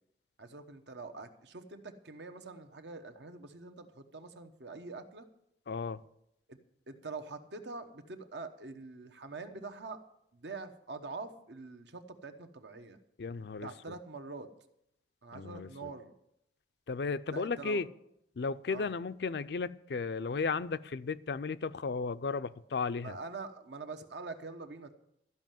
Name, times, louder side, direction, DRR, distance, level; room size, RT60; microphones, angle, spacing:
voice 1, 0.4-5.3 6.5-6.6 6.9-10.0 10.3-13.0 13.6-14.5 15.2-16.1 17.3-17.8 18.7-18.9 23.0-24.9, right 3 dB, 75° right, 8 dB, 1.0 m, -44 dB
voice 2, 5.7-6.0 13.2-13.7 15.3-15.9 16.9-17.9 18.4-23.2, left 4 dB, 65° left, 14 dB, 0.4 m, -34 dB
13.0 x 5.5 x 9.1 m, 0.77 s
head